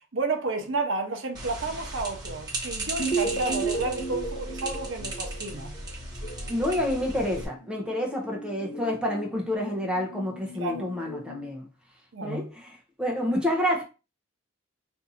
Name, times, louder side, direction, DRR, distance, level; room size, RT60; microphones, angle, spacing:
voice 1, 0.1-5.7 10.6-10.9 12.1-12.5, right 3 dB, 65° right, 0.7 m, -31 dB
sound 1, 1.4-7.5, right 2 dB, 20° right, 1.1 m, -36 dB
sound 2, 3.0-5.9, right 4 dB, 35° left, 0.7 m, -31 dB
sound 3, 6.2-11.5, left 3 dB, 75° left, 0.6 m, -43 dB
voice 2, 6.5-11.7 12.2-13.8, left 1 dB, 5° right, 0.6 m, -28 dB
2.6 x 2.5 x 4.1 m
head